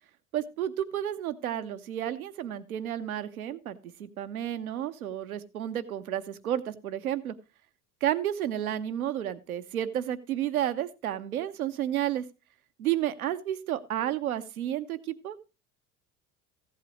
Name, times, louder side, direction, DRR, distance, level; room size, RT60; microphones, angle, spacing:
voice 1, 0.3-7.4 8.0-12.2 12.8-15.4, right 11 dB, 80° right, 11 dB, 0.9 m, -31 dB
15.0 x 8.2 x 3.1 m, 0.28 s
figure-of-eight pair, 70°, 43 cm